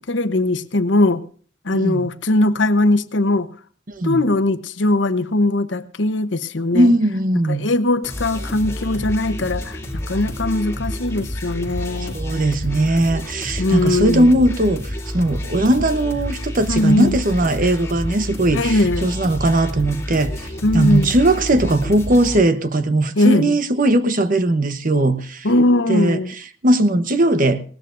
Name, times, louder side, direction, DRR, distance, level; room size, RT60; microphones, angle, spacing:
voice 1, 0.1-1.2 1.6-3.5 4.0-6.9 7.5-12.2 13.6-14.3 16.7-17.2 18.5-19.1 20.6-21.1 23.2-23.6 25.4-26.3, left 2 dB, 75° left, 10 dB, 0.9 m, -19 dB
voice 2, 1.7-2.1 3.9-4.2 6.7-7.7 12.0-20.5 20.7-25.5 25.9-26.2 26.6-27.6, right 1 dB, 45° right, 10 dB, 1.0 m, -18 dB
sound 1, 8.0-22.4, left 1 dB, 15° left, 2.8 m, -29 dB
19.5 x 18.5 x 2.6 m, 0.42 s
head